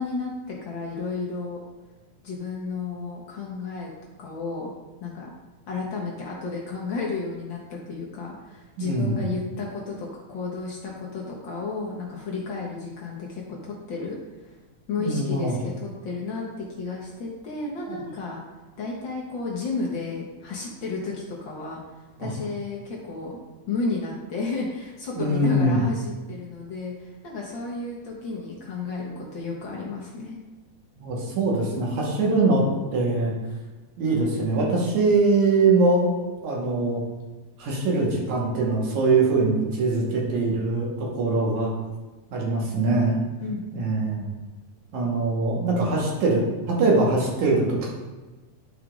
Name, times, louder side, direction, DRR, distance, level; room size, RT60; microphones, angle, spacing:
voice 1, 0.0-1.6 2.2-3.9 4.2-4.7 5.0-5.3 5.7-14.6 14.9-18.4 18.8-23.4 23.7-30.4 43.4-43.9, left 4 dB, 70° left, -3 dB, 1.1 m, -32 dB
voice 2, 8.8-9.2 15.0-15.6 17.9-18.0 22.2-22.3 25.2-25.8 31.0-32.6 32.9-33.3 34.0-37.0 37.6-41.7 42.3-43.2 43.7-44.3 44.9-47.9, right 3 dB, 75° right, -3 dB, 2.6 m, -22 dB
10.5 x 4.9 x 2.4 m, 1.2 s
omnidirectional pair, 3.4 m